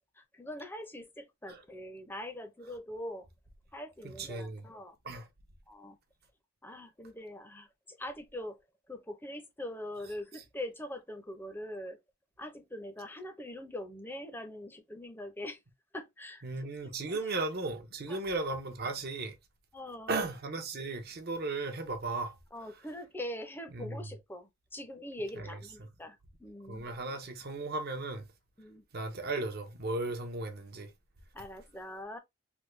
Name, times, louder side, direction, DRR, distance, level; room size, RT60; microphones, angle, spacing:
voice 1, 0.2-3.3 3.7-4.9 5.7-6.0 6.6-8.6 8.9-12.0 12.4-15.6 15.9-16.4 16.8-17.4 18.1-18.2 19.7-20.3 22.5-26.8 28.6-28.8 31.3-32.2, left 1 dB, 10° left, 0.6 m, -43 dB
voice 2, 4.0-4.6 5.0-5.3 16.4-19.4 20.1-22.3 23.7-24.1 25.4-25.5 25.8-25.9 26.7-28.2 28.9-30.9, right 2 dB, 45° right, 0.7 m, -36 dB
3.5 x 2.2 x 3.2 m
head